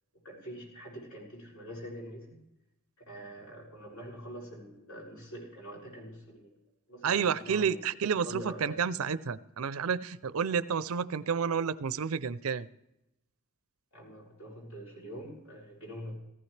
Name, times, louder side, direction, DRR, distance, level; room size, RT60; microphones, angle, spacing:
voice 1, 0.1-2.4 3.1-6.5 6.9-8.8 13.9-16.1, equal, 80° left, 6.5 m, -45 dB
voice 2, 7.0-12.7, right 6 dB, 80° right, 0.5 m, -30 dB
18.5 x 15.0 x 3.3 m
head